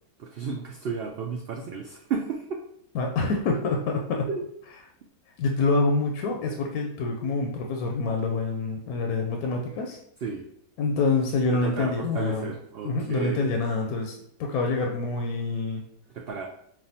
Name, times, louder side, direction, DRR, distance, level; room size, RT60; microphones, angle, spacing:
voice 1, 0.2-2.6 4.3-4.4 10.2-10.5 11.5-13.5 16.1-16.5, right 5 dB, 80° right, 1 dB, 0.5 m, -33 dB
voice 2, 2.9-4.3 5.4-10.0 10.8-12.5 12.8-15.8, left 3 dB, 80° left, 1 dB, 1.1 m, -26 dB
5.4 x 2.5 x 2.7 m, 0.70 s
omnidirectional pair, 1.6 m